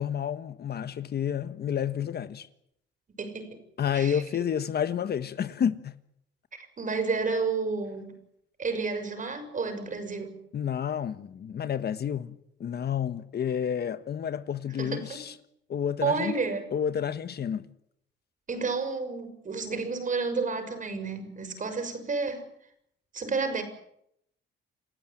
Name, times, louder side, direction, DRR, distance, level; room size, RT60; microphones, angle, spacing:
voice 1, 0.0-2.5 3.8-5.9 10.5-15.3 15.7-16.3 16.7-17.7, left 8 dB, 55° left, 1.4 m, -30 dB
voice 2, 3.1-3.6 3.9-4.2 6.5-8.2 8.6-10.4 14.8-15.2 16.0-16.7 18.5-22.4 23.1-23.6, right 4 dB, 40° right, 6.3 m, -31 dB
29.0 x 15.5 x 9.2 m
cardioid pair, 90°, 20 cm